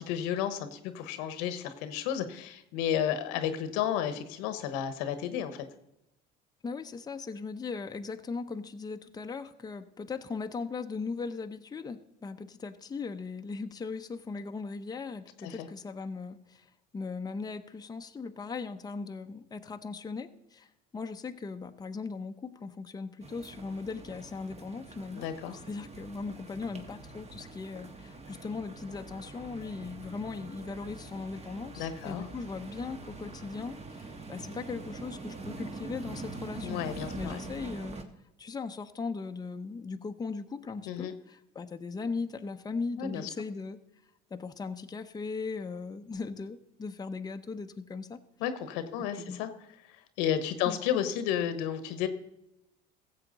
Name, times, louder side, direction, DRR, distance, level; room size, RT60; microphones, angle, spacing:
voice 1, 0.0-5.6 15.4-15.7 25.1-25.6 31.8-32.3 36.6-37.4 40.9-41.1 43.0-43.3 48.4-49.5 50.2-52.1, left 9 dB, 90° left, 11 dB, 1.1 m, -32 dB
voice 2, 6.6-16.7 16.9-25.3 25.7-38.0 38.4-43.8 44.3-48.2 49.2-49.4 50.7-50.8, left 4 dB, 20° left, 7 dB, 0.7 m, -38 dB
sound 1, 23.2-38.0, right 3 dB, 30° right, 1.4 m, -44 dB
15.5 x 7.5 x 3.9 m, 0.87 s
supercardioid pair, 95°, 21 cm